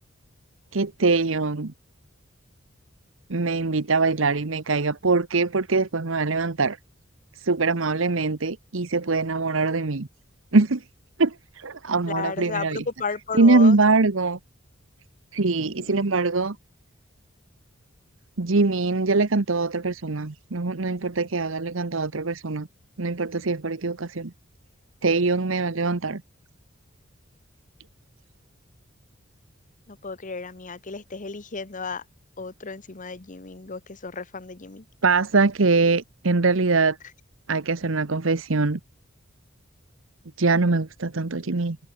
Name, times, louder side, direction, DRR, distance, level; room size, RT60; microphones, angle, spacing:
voice 1, 0.7-1.7 3.3-6.8 7.4-10.1 10.5-10.8 11.2-12.8 13.3-14.4 15.3-16.6 18.4-22.7 23.0-24.3 25.0-26.2 35.0-37.0 37.5-38.8 40.4-41.8, right 3 dB, 75° right, 1.1 m, -23 dB
voice 2, 12.1-13.8 15.6-16.0 29.9-32.0 32.4-34.8, left 4 dB, 40° left, 1.2 m, -34 dB
head